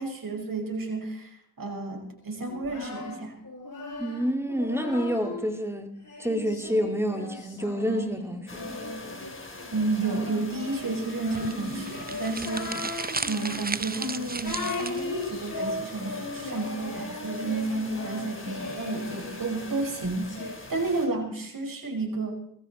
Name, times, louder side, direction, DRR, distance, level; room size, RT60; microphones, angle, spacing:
voice 1, 0.0-3.3 9.7-12.9 13.3-22.3, right 3 dB, 65° right, 5.5 m, -31 dB
Singing, 2.5-5.5 6.0-20.5, left 3 dB, 60° left, 7.5 m, -38 dB
voice 2, 4.0-5.9 6.2-8.8, equal, 5° right, 2.8 m, -28 dB
sound 1, 8.5-21.1, left 2 dB, 35° left, 4.1 m, -43 dB
sound 2, 11.3-15.3, right 4 dB, 25° right, 0.8 m, -35 dB
18.5 x 15.0 x 4.3 m
cardioid pair, 40°, 36 cm